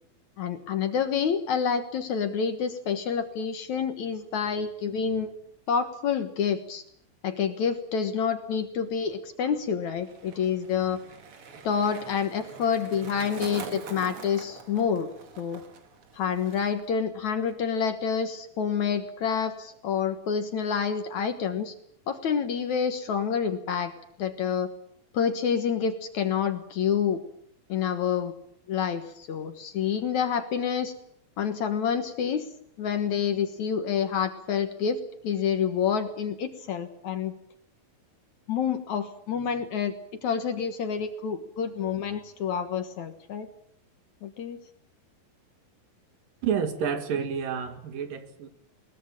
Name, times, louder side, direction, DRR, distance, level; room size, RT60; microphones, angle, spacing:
voice 1, 0.4-5.3 5.7-6.8 7.2-11.0 11.6-15.1 15.4-15.6 16.1-21.7 22.1-23.9 24.2-24.7 25.1-27.2 27.7-28.3 28.7-30.9 31.4-32.5 32.8-37.3 38.5-39.9 40.2-43.5 44.2-44.6, left 7 dB, 60° left, 8 dB, 2.4 m, -28 dB
Skateboard, 9.4-17.0 17.2-17.7, right 5 dB, 45° right, 2.5 m, -44 dB
voice 2, 46.4-48.5, right 7 dB, 65° right, 8 dB, 3.6 m, -29 dB
21.0 x 20.5 x 9.0 m, 0.68 s
omnidirectional pair, 4.3 m